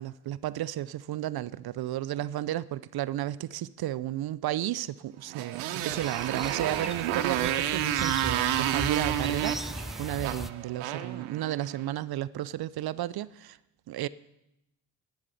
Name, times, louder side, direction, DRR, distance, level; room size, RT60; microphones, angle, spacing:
voice 1, 0.0-13.6 13.9-14.1, right 13 dB, 50° right, 0.5 m, -33 dB
Motorcycle, 5.3-11.8, right 11 dB, 80° right, 1.0 m, -30 dB
sound 1, 5.5-10.5, equal, ahead, 0.3 m, -39 dB
12.0 x 7.4 x 8.2 m
hypercardioid pair, 45°, 48 cm